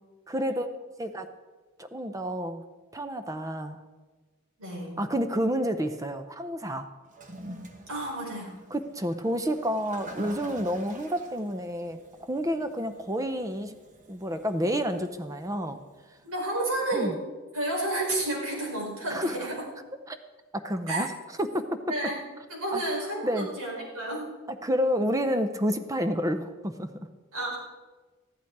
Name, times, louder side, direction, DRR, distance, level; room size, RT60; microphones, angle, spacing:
voice 1, 0.3-0.7 1.0-1.3 1.8-2.6 2.9-3.8 5.0-6.9 8.7-13.8 14.1-15.8 16.9-17.1 19.1-19.5 20.1-20.2 20.5-21.1 21.4-21.6 22.7-22.8 23.2-23.5 24.6-26.9, equal, 15° right, 8 dB, 0.6 m, -29 dB
voice 2, 4.6-5.0 7.9-8.5 16.2-17.2 17.5-19.6 20.9-21.1 21.9-22.2 22.5-24.3 27.3-27.6, right 1 dB, 80° right, -3 dB, 4.7 m, -31 dB
Toilet flush, 7.1-16.3, right 1 dB, 35° right, 1.2 m, -47 dB
14.0 x 11.5 x 4.7 m, 1.3 s
head